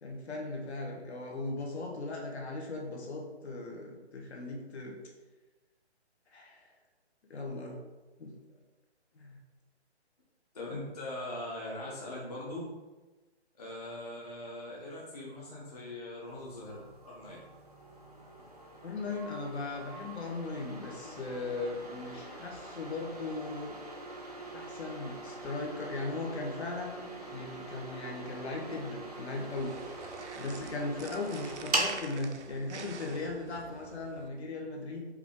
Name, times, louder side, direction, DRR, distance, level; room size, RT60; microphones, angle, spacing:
voice 1, 0.0-5.0 6.3-6.7 7.3-7.8 8.2-8.3 9.1-9.4 18.8-23.8 24.5-29.7 30.3-35.1, left 3 dB, 70° left, 0 dB, 1.1 m, -38 dB
voice 2, 10.5-12.7 13.5-17.4, left 1 dB, 35° left, -5 dB, 0.7 m, -41 dB
sound 1, 16.3-32.0, right 2 dB, 35° right, 0.5 m, -42 dB
sound 2, 29.3-34.3, right 5 dB, 80° right, 0.6 m, -47 dB
4.9 x 2.5 x 3.5 m, 1.2 s
hypercardioid pair, 175°, 34 cm